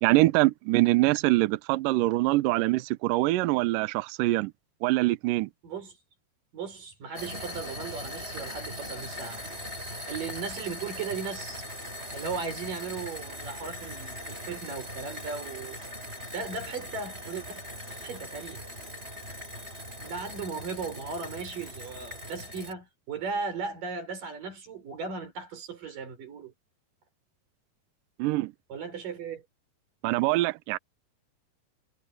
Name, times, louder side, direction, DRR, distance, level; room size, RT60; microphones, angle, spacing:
voice 1, 0.0-4.5 4.8-5.5 28.2-28.5 30.0-30.8, right 19 dB, 85° right, 1.9 m, -24 dB
voice 2, 5.6-6.0 6.5-9.7 10.1-11.6 12.1-15.8 16.3-17.6 18.0-18.6 20.0-26.5 28.7-29.4, right 5 dB, 50° right, 6.6 m, -37 dB
sound 1, 7.1-22.7, left 1 dB, 15° right, 6.0 m, -40 dB
sound 2, 15.2-20.4, right 6 dB, 70° right, 7.5 m, -59 dB
omnidirectional pair, 4.8 m